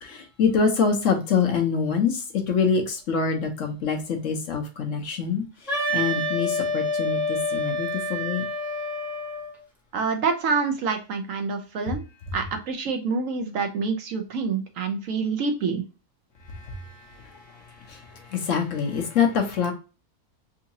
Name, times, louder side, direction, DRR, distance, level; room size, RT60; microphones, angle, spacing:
voice 1, 0.0-5.4 5.9-8.4 16.5-19.7, left 6 dB, 60° left, 1.0 m, -25 dB
Wind instrument woodwind instrument, 5.7-9.5, left 1 dB, ahead, 0.9 m, -27 dB
voice 2, 9.9-12.0 12.3-15.8, right 4 dB, 65° right, 1.0 m, -27 dB
3.8 x 2.7 x 2.6 m
omnidirectional pair, 1.6 m